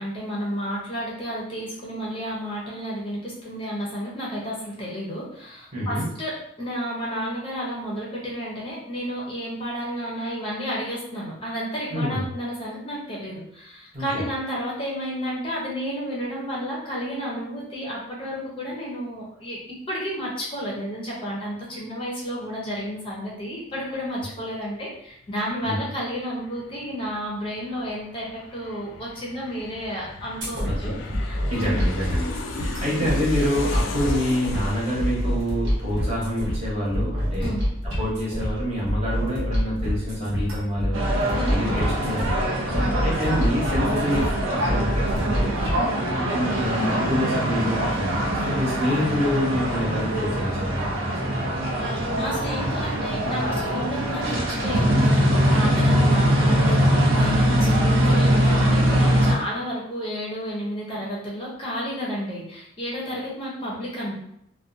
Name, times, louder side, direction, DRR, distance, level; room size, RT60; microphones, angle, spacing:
voice 1, 0.0-30.9 31.2-31.8 37.4-37.6 41.3-41.7 42.7-43.0 45.7-46.0 51.8-64.1, equal, 25° left, -5 dB, 0.6 m, -31 dB
voice 2, 5.7-6.0 11.9-12.3 13.9-14.3 25.6-25.8 30.6-31.0 31.3-37.5 38.0-41.1 41.4-42.5 43.0-45.5 46.1-51.6 57.6-57.9, equal, 30° right, -6 dB, 0.9 m, -27 dB
Aircraft, 25.2-25.3 25.6-36.9 37.2-37.3, left 3 dB, 80° left, 0.4 m, -37 dB
sound 1, 30.4-45.8, equal, 70° right, 1.0 m, -27 dB
sound 2, 40.9-59.3, equal, 85° right, 0.6 m, -22 dB
2.5 x 2.2 x 2.5 m, 0.73 s
head